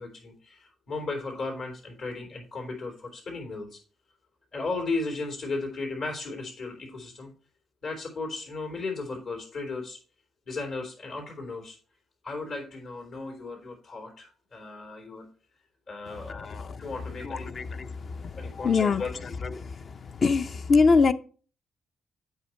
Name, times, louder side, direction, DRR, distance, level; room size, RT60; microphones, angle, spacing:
voice 1, 0.0-3.8 4.5-7.3 7.8-10.0 10.4-11.8 12.2-15.3 15.9-16.5 16.8-17.5 18.3-19.1, left 3 dB, 70° left, 3.1 m, -35 dB
voice 2, 16.3-16.8 17.2-17.9 18.2-18.3 18.6-19.1 19.6-19.7 20.2-21.1, left 4 dB, 45° left, 0.5 m, -23 dB
8.2 x 4.9 x 4.4 m
cardioid pair, 90°, 0 cm